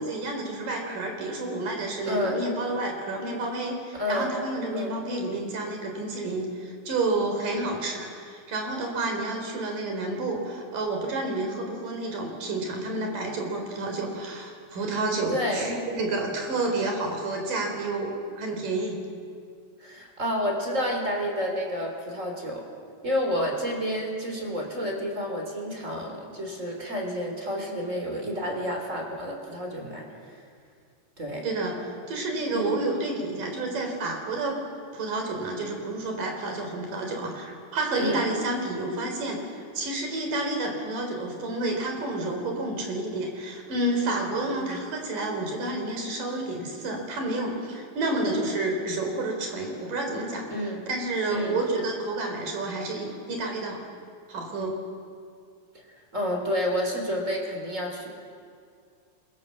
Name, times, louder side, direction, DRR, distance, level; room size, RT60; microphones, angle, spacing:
voice 1, 0.0-19.0 31.4-31.8 32.1-34.6 34.9-39.4 39.7-50.5 50.9-53.8 54.3-54.8, right 2 dB, 80° right, 2 dB, 5.5 m, -30 dB
voice 2, 2.0-2.4 3.9-4.4 4.7-5.0 7.5-7.8 15.3-15.7 19.8-22.7 23.0-30.0 31.2-31.5 32.5-32.8 38.0-38.2 44.5-44.8 50.5-50.8 51.3-51.6 56.1-58.1, equal, 20° right, 1 dB, 4.0 m, -30 dB
27.0 x 22.5 x 7.4 m, 2.2 s
omnidirectional pair, 3.8 m